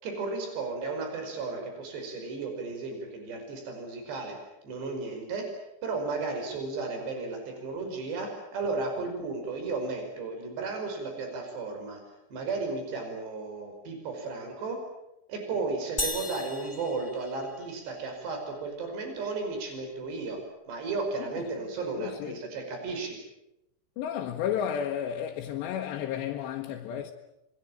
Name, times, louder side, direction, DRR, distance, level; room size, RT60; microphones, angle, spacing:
voice 1, 0.0-4.4 4.6-5.5 5.8-12.0 12.3-14.8 15.3-20.4 20.7-23.2, right 3 dB, 70° right, 7.3 m, -34 dB
sound 1, 16.0-17.9, left 2 dB, 55° left, 0.4 m, -36 dB
voice 2, 21.9-22.4 24.0-27.1, left 9 dB, 80° left, 3.4 m, -32 dB
27.5 x 21.5 x 8.9 m
omnidirectional pair, 5.2 m